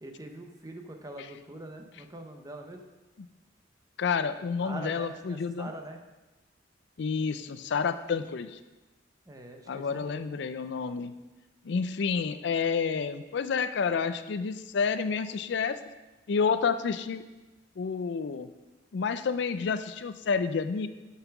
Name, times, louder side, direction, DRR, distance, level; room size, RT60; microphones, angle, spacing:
voice 1, 0.0-2.8 4.6-6.0 9.3-10.2, right 2 dB, 20° right, 4 dB, 0.8 m, -43 dB
voice 2, 4.0-5.7 7.0-8.6 9.7-11.1 11.6-15.8 16.3-17.2 17.8-18.5 18.9-20.9, left 5 dB, 65° left, 11 dB, 0.4 m, -29 dB
8.1 x 5.7 x 5.8 m, 1.1 s
head